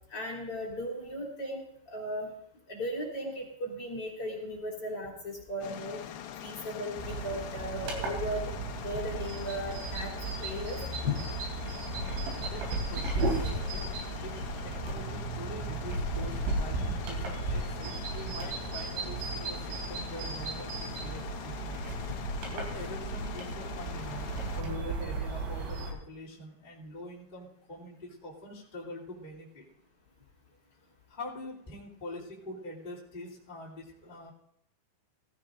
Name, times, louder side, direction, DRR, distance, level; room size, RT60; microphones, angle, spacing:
voice 1, 0.1-2.3 2.7-6.0 6.4-8.5 8.8-10.1 10.4-11.1, left 1 dB, 35° left, -3 dB, 3.4 m, -36 dB
sound 1, 5.6-24.6, left 10 dB, 80° left, 2.1 m, -43 dB
sound 2, 7.0-25.9, right 3 dB, 85° right, 5.7 m, -35 dB
voice 2, 12.5-13.9 14.2-14.4 14.6-21.9 22.5-29.6 31.1-34.3, left 1 dB, 15° left, -7 dB, 2.2 m, -44 dB
19.5 x 15.5 x 2.6 m, 0.69 s
omnidirectional pair, 5.4 m